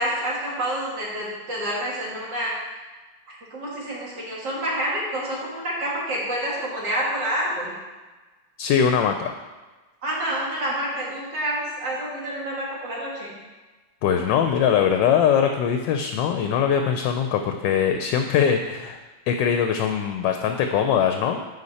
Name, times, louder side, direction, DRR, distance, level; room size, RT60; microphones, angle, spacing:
voice 1, 0.0-2.6 3.3-7.7 10.0-13.3, right 1 dB, 60° right, -5 dB, 2.5 m, -28 dB
voice 2, 8.6-9.3 14.0-19.0 19.3-21.4, left 8 dB, 75° left, 6 dB, 1.1 m, -21 dB
10.0 x 4.4 x 4.1 m, 1.2 s
omnidirectional pair, 2.2 m